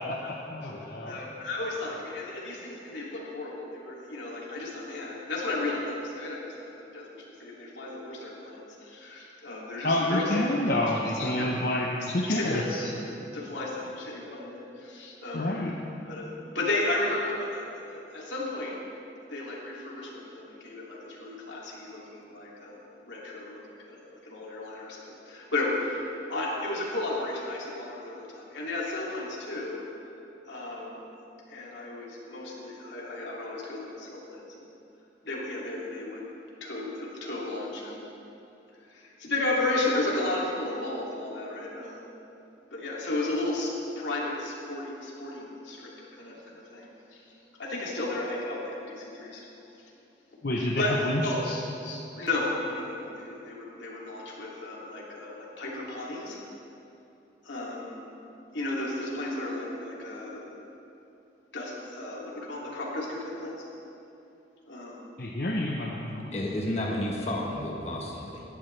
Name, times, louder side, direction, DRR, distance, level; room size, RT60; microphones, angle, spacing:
voice 1, 0.0-1.2 9.8-11.9 12.1-12.8 15.3-15.8 50.4-51.6 65.2-66.4, left 1 dB, 55° left, -1 dB, 0.8 m, -28 dB
voice 2, 1.0-11.5 12.0-15.5 16.1-17.6 17.9-18.8 19.3-29.8 30.5-31.1 31.5-34.7 35.2-36.2 36.6-38.1 38.9-42.0 42.7-47.2 47.6-49.4 50.6-51.4 51.8-56.4 57.4-58.1 58.5-60.7 61.5-63.6 64.7-65.1, left 2 dB, 85° left, -4 dB, 2.7 m, -34 dB
voice 3, 66.3-68.4, left 1 dB, 35° left, -2 dB, 1.2 m, -31 dB
17.0 x 11.5 x 3.3 m, 2.8 s
head